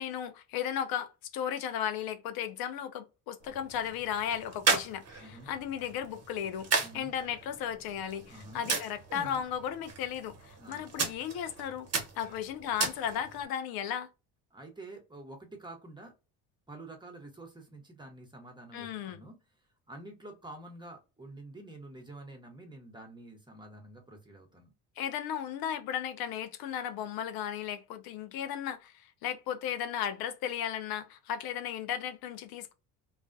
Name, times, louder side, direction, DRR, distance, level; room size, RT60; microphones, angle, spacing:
voice 1, 0.0-6.7 6.9-11.9 12.2-14.1 18.7-19.2 25.0-32.7, left 9 dB, 60° left, 0.5 m, -35 dB
sound 1, 3.4-13.4, right 4 dB, 40° right, 1.0 m, -36 dB
voice 2, 5.2-5.5 6.8-7.1 8.3-8.6 10.6-10.9 14.5-16.1 16.7-19.4 19.9-24.7, right 2 dB, 10° right, 0.9 m, -48 dB
2.3 x 2.1 x 2.5 m
supercardioid pair, 80°, 41 cm